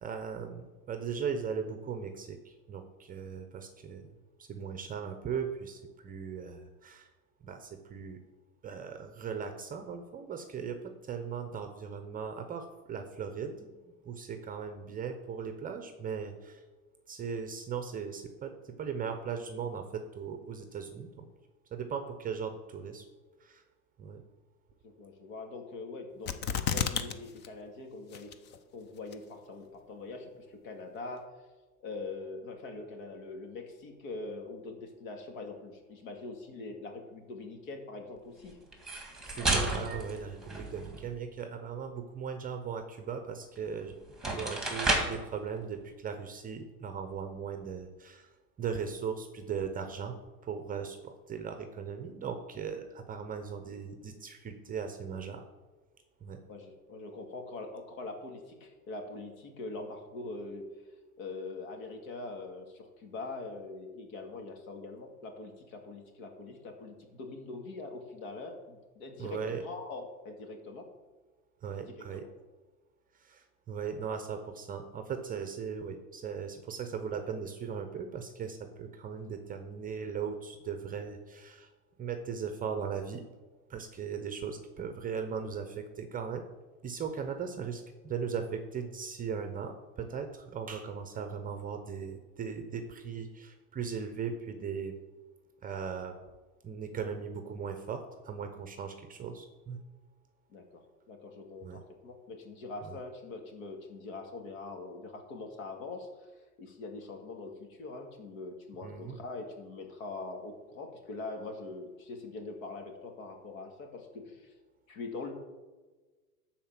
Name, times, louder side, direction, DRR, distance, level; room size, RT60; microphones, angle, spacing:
voice 1, 0.0-7.1 7.4-8.2 8.6-13.7 14.0-16.6 17.1-21.3 21.7-23.1 23.4-23.6 24.0-24.2 39.2-44.0 44.2-48.3 48.6-50.2 50.4-55.4 56.2-56.4 69.2-69.6 71.6-72.3 73.2-81.7 82.0-83.2 83.7-86.5 86.8-95.0 95.6-96.2 96.6-99.8 101.6-101.8 102.8-103.0 108.8-109.2, right 6 dB, 20° right, 7 dB, 0.7 m, -38 dB
voice 2, 24.8-28.3 28.7-31.3 31.8-38.6 56.5-60.7 61.2-70.9 71.9-72.2 100.5-100.8 101.1-106.3 106.6-114.5 114.9-115.3, left 3 dB, 60° left, 4 dB, 2.3 m, -43 dB
sound 1, 26.3-27.1 27.4-27.5 28.1-28.6 29.1-29.2, left 8 dB, 25° left, 0.5 m, -30 dB
sound 2, 38.7-41.1 43.6-43.7 44.1-45.3, right 2 dB, ahead, 1.7 m, -32 dB
12.0 x 4.4 x 7.3 m, 1.3 s
hypercardioid pair, 120°, 46 cm